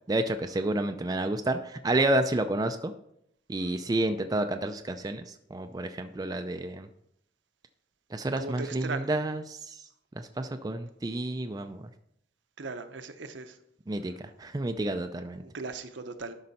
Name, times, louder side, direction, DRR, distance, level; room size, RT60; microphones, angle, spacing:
voice 1, 0.1-2.9 3.5-6.9 8.1-11.9 13.9-15.4, right 1 dB, 20° right, 7 dB, 0.4 m, -30 dB
voice 2, 8.4-9.1 12.6-13.5 15.4-16.3, right 3 dB, 70° right, 8 dB, 0.8 m, -38 dB
12.0 x 5.4 x 4.2 m, 0.77 s
head